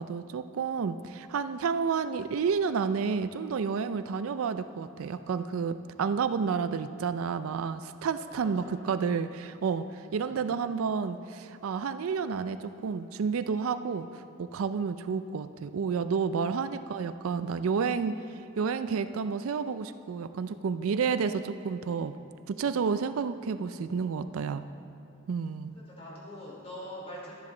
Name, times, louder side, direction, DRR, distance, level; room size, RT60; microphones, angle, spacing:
voice 1, 0.0-14.1 14.4-18.2 18.6-22.2 22.5-24.7 25.3-25.8, right 5 dB, 75° right, 11 dB, 0.4 m, -30 dB
voice 2, 8.3-8.7 10.0-10.4 25.7-27.3, equal, 30° left, -5 dB, 3.0 m, -44 dB
12.0 x 10.5 x 3.9 m, 2.7 s
head